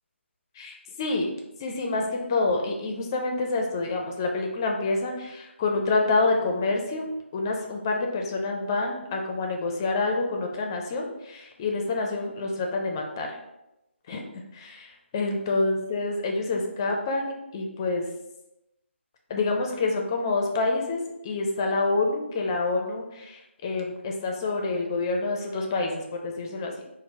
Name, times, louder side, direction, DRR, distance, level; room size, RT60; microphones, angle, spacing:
voice 1, 0.6-1.3 1.6-7.0 7.3-13.4 14.1-18.1 19.3-26.7, left 3 dB, 20° left, 1 dB, 0.4 m, -27 dB
4.3 x 2.0 x 4.0 m, 0.92 s
figure-of-eight pair, 150°, 7 cm